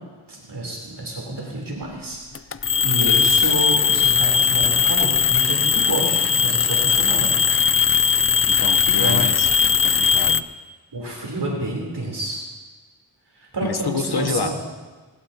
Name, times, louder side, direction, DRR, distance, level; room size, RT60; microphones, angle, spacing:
voice 1, 0.3-2.2 2.6-7.4 8.9-9.3 10.9-12.4 13.4-14.6, right 2 dB, 70° right, -2 dB, 3.7 m, -29 dB
sound 1, 2.3-10.4, left 6 dB, 35° left, 0.4 m, -19 dB
voice 2, 8.4-9.5 9.8-10.4 13.6-14.6, left 5 dB, 60° left, 8 dB, 1.1 m, -28 dB
19.5 x 19.5 x 2.9 m, 1.3 s
wide cardioid pair, 95°, 42 cm